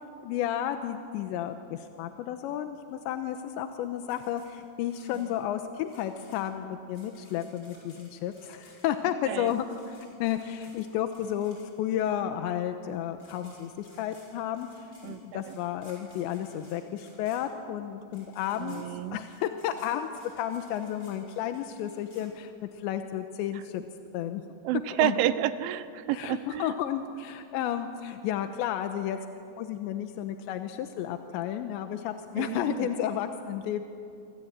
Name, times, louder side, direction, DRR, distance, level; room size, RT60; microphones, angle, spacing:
voice 1, 0.2-14.7 15.0-18.9 19.1-20.1 20.3-22.5 22.8-23.8 24.1-24.4 25.0-25.2 26.1-29.2 29.6-33.8, left 10 dB, 80° left, 7 dB, 2.8 m, -32 dB
sound 1, 4.1-12.0 12.9-13.0 13.2-22.8, left 1 dB, 20° left, 7.5 m, -58 dB
voice 2, 15.0-15.6 18.6-19.2 23.5-23.6 24.6-26.8 32.4-32.9, right 13 dB, 80° right, 13 dB, 3.0 m, -30 dB
27.0 x 25.5 x 8.8 m, 2.5 s
omnidirectional pair, 5.9 m